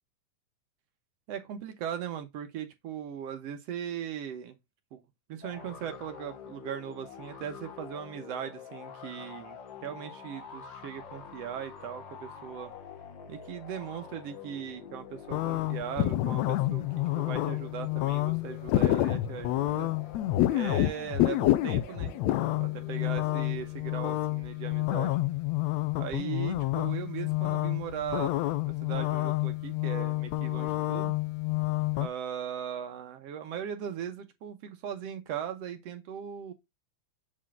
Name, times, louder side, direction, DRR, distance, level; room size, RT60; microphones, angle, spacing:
voice 1, 1.3-4.6 4.9-5.0 5.3-12.7 13.3-16.9 17.2-19.9 20.5-22.2 22.6-25.2 26.0-28.3 28.7-31.1 31.9-36.5, right 9 dB, 65° right, 1.9 m, -39 dB
sound 1, 5.4-23.8, left 7 dB, 55° left, 1.3 m, -47 dB
sound 2, 15.3-32.1, left 16 dB, 80° left, 1.7 m, -29 dB
7.7 x 3.7 x 3.7 m
omnidirectional pair, 3.6 m